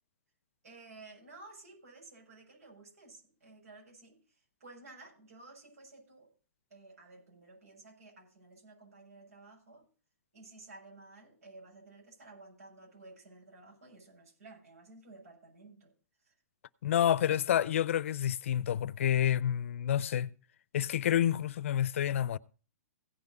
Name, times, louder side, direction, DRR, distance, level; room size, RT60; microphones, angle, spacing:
voice 1, 0.6-4.2 4.6-6.3 6.7-9.8 10.3-15.9 16.2-16.3 16.9-17.4, right 3 dB, 85° right, 7.4 m, -54 dB
voice 2, 16.8-20.3 20.7-22.4, left 10 dB, 60° left, 0.5 m, -29 dB
16.5 x 6.0 x 5.4 m
hypercardioid pair, 165°, 8 cm